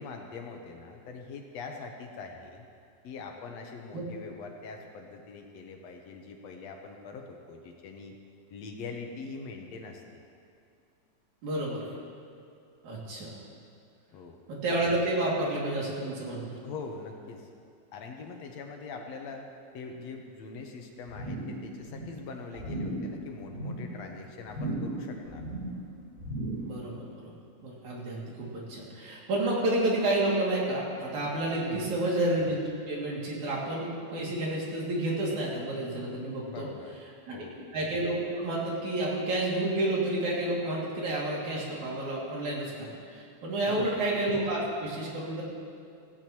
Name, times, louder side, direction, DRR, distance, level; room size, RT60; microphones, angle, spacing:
voice 1, 0.0-2.6 3.0-8.1 8.5-10.0 14.1-14.4 16.6-17.5 17.9-19.4 19.7-25.4 31.7-32.0 36.5-36.9 37.3-37.6 43.7-44.0, left 4 dB, 70° left, 2 dB, 2.0 m, -43 dB
voice 2, 11.4-11.9 12.8-13.3 14.5-16.6 26.6-26.9 27.6-32.6 32.9-36.7 37.3-37.4 37.7-45.4, right 1 dB, 75° right, -5 dB, 4.0 m, -30 dB
sound 1, 21.1-21.6 21.8-22.2 22.6-23.1 23.4-23.9 24.5-25.0 25.3-25.8 26.2-26.7 27.1-27.2, right 1 dB, 25° right, 3.8 m, -35 dB
17.0 x 16.0 x 3.1 m, 2.4 s
omnidirectional pair, 3.5 m